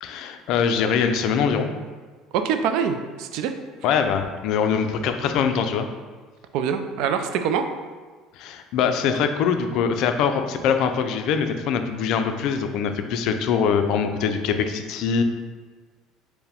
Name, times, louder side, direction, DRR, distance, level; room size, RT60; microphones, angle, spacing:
voice 1, 0.0-1.7 3.8-5.9 8.3-15.2, left 6 dB, 65° left, 7 dB, 0.3 m, -23 dB
voice 2, 2.3-3.5 6.5-7.7, right 7 dB, 70° right, 7 dB, 0.3 m, -24 dB
4.6 x 2.1 x 3.4 m, 1.4 s
supercardioid pair, 100°, 0 cm